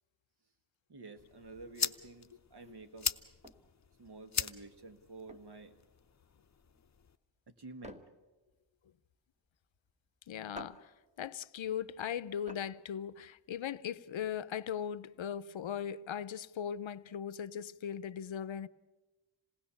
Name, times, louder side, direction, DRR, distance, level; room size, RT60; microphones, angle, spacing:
voice 1, 0.9-3.1 4.0-5.7 7.5-8.0, right 3 dB, 60° right, 1.7 m, -50 dB
sound 1, 1.2-7.2, left 6 dB, 35° left, 0.7 m, -41 dB
sound 2, 1.8-14.0, equal, 15° right, 1.3 m, -56 dB
voice 2, 10.3-10.9 11.2-18.7, left 8 dB, 85° left, 0.7 m, -39 dB
27.0 x 19.0 x 7.1 m
wide cardioid pair, 125°, 46 cm